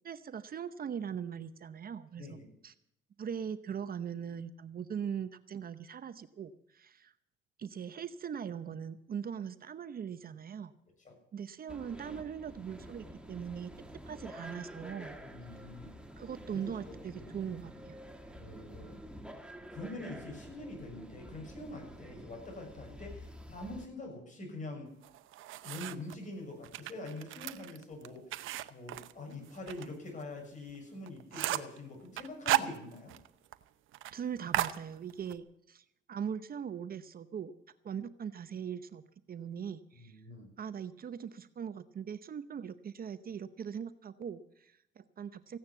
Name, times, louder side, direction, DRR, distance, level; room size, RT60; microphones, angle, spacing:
voice 1, 0.0-2.4 2.6-2.7 3.2-7.1 7.6-10.7 11.3-13.7 14.1-15.2 16.2-18.0 34.1-37.5 37.8-40.2 40.6-45.6, right 8 dB, 50° right, 13 dB, 0.8 m, -40 dB
voice 2, 2.2-2.5 11.0-11.1 15.2-16.0 16.5-17.4 18.4-19.0 19.7-24.9 25.6-28.4 28.7-33.2 39.9-40.5, left 2 dB, 40° left, 1 dB, 7.1 m, -45 dB
sound 1, 11.7-23.9, equal, 5° right, 2.0 m, -49 dB
sound 2, 25.0-26.2 26.6-29.9 30.2-30.3 30.7-30.8 31.1-31.8 32.2-33.3 33.5-33.6 33.9-34.1 34.5-35.4, right 14 dB, 85° right, 0.8 m, -35 dB
16.0 x 9.5 x 8.2 m, 0.76 s
cardioid pair, 90°, 20 cm